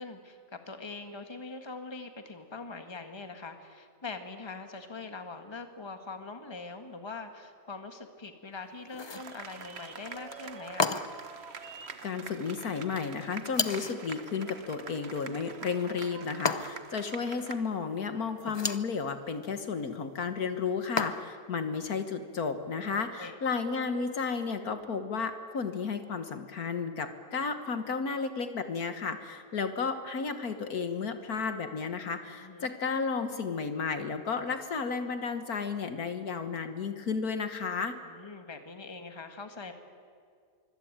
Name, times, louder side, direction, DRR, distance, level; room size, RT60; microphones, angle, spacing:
voice 1, 0.0-11.2 22.9-23.4 32.4-32.7 38.0-39.7, left 3 dB, 15° left, 6 dB, 1.6 m, -43 dB
sound 1, 8.9-9.3 10.8-11.3 13.5-14.0 16.5-17.0 18.4-18.9 21.0-21.5, left 4 dB, 40° left, 0.4 m, -32 dB
sound 2, 9.1-17.6, right 5 dB, 40° right, 1.4 m, -45 dB
voice 2, 12.0-38.0, left 5 dB, 65° left, 8 dB, 1.8 m, -33 dB
24.5 x 24.0 x 8.9 m, 2.1 s
omnidirectional pair, 1.8 m